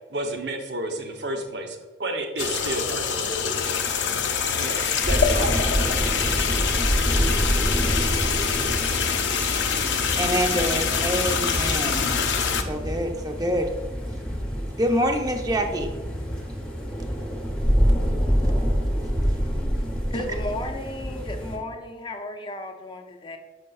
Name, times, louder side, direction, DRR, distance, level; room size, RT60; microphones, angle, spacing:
voice 1, 0.1-3.4 4.6-5.7, right 1 dB, 65° right, 0.8 m, -31 dB
sound 1, 2.4-12.6, left 6 dB, 75° left, 0.6 m, -25 dB
sound 2, 5.0-21.6, equal, 5° left, 0.9 m, -26 dB
voice 2, 10.1-12.1 12.6-13.7 14.8-15.9, equal, 20° right, 0.6 m, -26 dB
voice 3, 20.1-23.4, left 1 dB, 25° left, 0.5 m, -34 dB
6.5 x 6.4 x 2.3 m
head